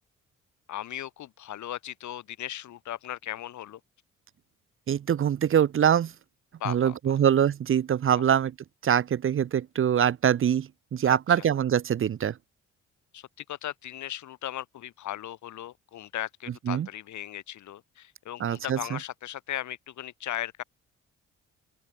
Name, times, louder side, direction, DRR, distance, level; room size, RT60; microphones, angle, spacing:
voice 1, 0.7-3.8 6.6-7.2 8.1-8.2 11.0-11.4 13.1-20.6, left 12 dB, 75° left, 2.4 m, -37 dB
voice 2, 4.9-6.1 6.7-8.5 8.8-12.3 16.7-16.9 18.4-19.0, right 9 dB, 45° right, 0.7 m, -24 dB
open air
cardioid pair, 90°, 30 cm